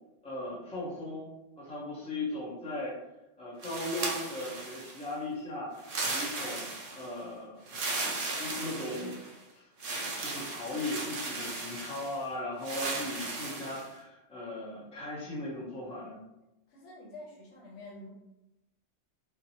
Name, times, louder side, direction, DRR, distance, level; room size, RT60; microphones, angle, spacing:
voice 1, 0.2-1.3 1.6-3.0 3.4-5.7 6.1-6.7 6.9-7.5 8.0-8.1 8.4-9.1 9.5-9.7 10.2-16.2, left 1 dB, 5° left, -6 dB, 0.6 m, -37 dB
sound 1, 3.6-5.1 5.8-7.1 7.7-9.3 9.8-12.2 12.6-13.9, right 3 dB, 65° right, 0.3 m, -36 dB
voice 2, 16.7-18.1, left 2 dB, 90° left, -3 dB, 1.1 m, -47 dB
2.7 x 2.1 x 2.8 m, 0.95 s
omnidirectional pair, 1.2 m